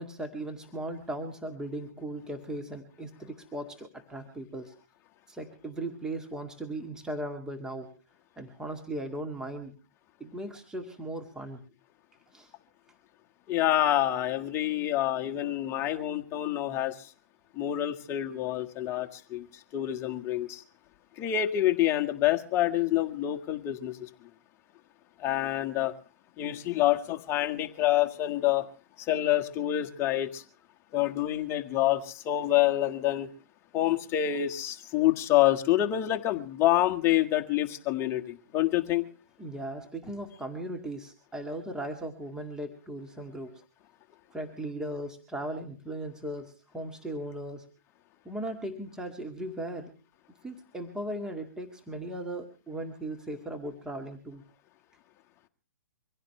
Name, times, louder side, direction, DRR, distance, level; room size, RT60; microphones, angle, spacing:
voice 1, 0.0-4.7 5.3-7.9 8.4-9.7 10.2-11.6 12.3-12.5 39.4-43.6 44.3-47.6 48.2-49.9 50.4-54.4, right 1 dB, 5° right, 5 dB, 2.1 m, -37 dB
voice 2, 13.5-17.1 17.5-20.6 21.2-24.1 25.2-25.9 26.4-28.7 29.0-30.4 30.9-33.3 33.7-39.0, left 13 dB, 25° left, 4 dB, 1.7 m, -27 dB
24.5 x 16.0 x 3.3 m, 0.37 s
hypercardioid pair, 135°, 10 cm